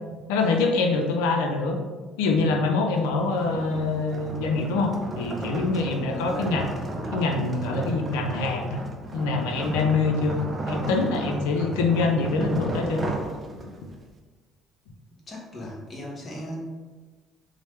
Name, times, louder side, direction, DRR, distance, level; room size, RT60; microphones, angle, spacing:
voice 1, 0.3-1.8 2.2-6.7 7.1-8.8 9.1-10.4 10.7-13.0, left 3 dB, 85° left, 3 dB, 0.4 m, -25 dB
sound 1, 3.0-13.9, right 2 dB, 30° right, 0.5 m, -34 dB
voice 2, 5.9-6.6 15.1-16.6, equal, 40° left, -2 dB, 0.9 m, -37 dB
3.0 x 2.0 x 3.1 m, 1.3 s
supercardioid pair, 70°, 0 cm